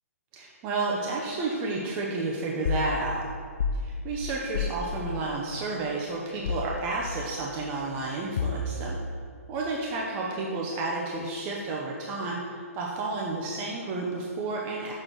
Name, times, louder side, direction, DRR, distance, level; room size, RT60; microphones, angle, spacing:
voice 1, 0.3-3.2 3.8-9.0 9.5-14.9, right 3 dB, 25° right, -2 dB, 0.6 m, -31 dB
sound 1, 2.7-2.9 3.6-3.9 4.5-4.8 6.5-6.8 8.4-8.9, left 5 dB, 50° left, 0.4 m, -28 dB
6.4 x 3.7 x 6.0 m, 2.2 s
figure-of-eight pair, 125°, 8 cm